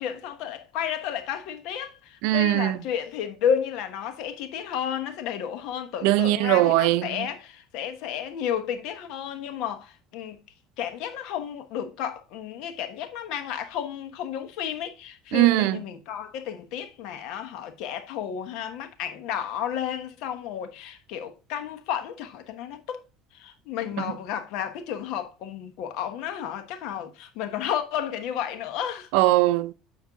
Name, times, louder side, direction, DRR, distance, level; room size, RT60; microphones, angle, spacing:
voice 1, 0.0-10.4 10.8-23.0 23.3-29.1, left 9 dB, 70° left, 1.1 m, -32 dB
voice 2, 2.2-2.8 6.0-7.0 15.3-15.8 29.1-29.7, right 16 dB, 80° right, 0.5 m, -20 dB
7.8 x 4.6 x 3.5 m
cardioid pair, 135°, 0 cm